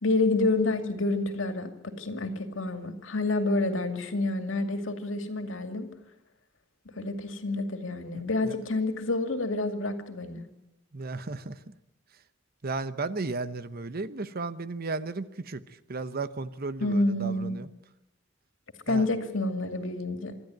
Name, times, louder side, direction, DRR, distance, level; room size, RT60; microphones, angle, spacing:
voice 1, 0.0-5.9 7.0-10.4 16.8-17.6 18.9-20.3, left 2 dB, 85° left, 7 dB, 2.4 m, -28 dB
voice 2, 10.9-11.7 12.6-17.7 18.9-19.1, right 3 dB, 50° right, 13 dB, 0.9 m, -34 dB
25.0 x 12.5 x 9.2 m, 0.95 s
head